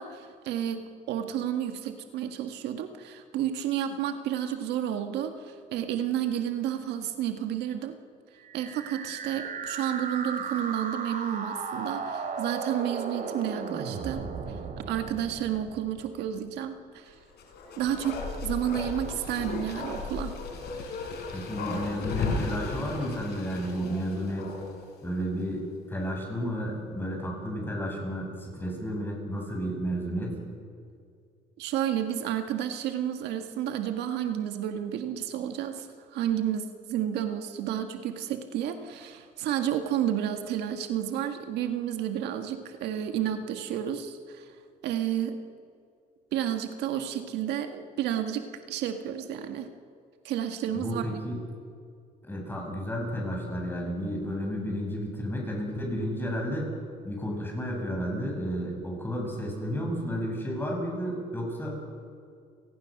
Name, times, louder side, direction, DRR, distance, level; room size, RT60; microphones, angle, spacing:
voice 1, 0.0-7.9 8.5-14.2 14.9-17.2 17.8-20.4 31.6-44.5 44.8-45.4 46.3-49.7 50.2-51.2, right 10 dB, 85° right, 7 dB, 1.7 m, -31 dB
sound 1, 8.4-16.4, right 5 dB, 50° right, 3.2 m, -35 dB
Bark, 17.3-24.9 25.2-25.3, left 3 dB, 70° left, 4.7 m, -35 dB
voice 2, 21.3-24.5 25.0-25.6 25.9-30.3 50.7-51.4 52.3-56.7 57.0-61.8, equal, 10° left, -1 dB, 7.9 m, -32 dB
30.0 x 18.5 x 6.6 m, 2.3 s
cardioid pair, 110°, 17 cm